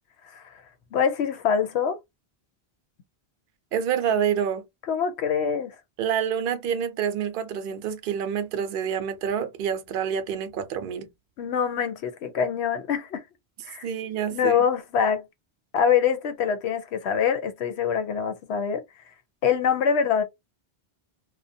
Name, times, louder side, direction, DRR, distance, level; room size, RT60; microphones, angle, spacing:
voice 1, 0.9-2.0 4.9-5.7 11.4-13.2 13.6-13.9 14.3-15.2 15.7-18.8 19.4-20.2, left 7 dB, 90° left, 0.9 m, -24 dB
voice 2, 3.7-4.6 6.0-11.1 13.8-14.6, right 8 dB, 65° right, 0.7 m, -27 dB
2.5 x 2.2 x 2.6 m
omnidirectional pair, 1.1 m